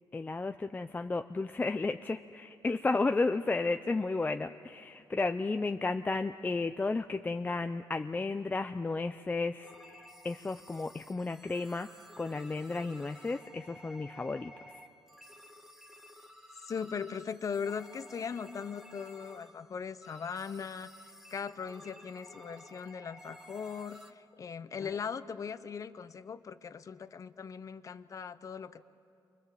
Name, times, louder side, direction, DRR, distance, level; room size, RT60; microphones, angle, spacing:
voice 1, 0.1-11.9 12.2-14.5 24.8-24.9, left 3 dB, 20° left, 7 dB, 0.5 m, -33 dB
sound 1, 9.6-24.1, equal, 5° right, 1.6 m, -53 dB
voice 2, 16.7-20.9 21.3-28.9, left 6 dB, 45° left, 13 dB, 0.9 m, -39 dB
28.5 x 24.5 x 7.7 m, 2.7 s
cardioid pair, 110°, 8 cm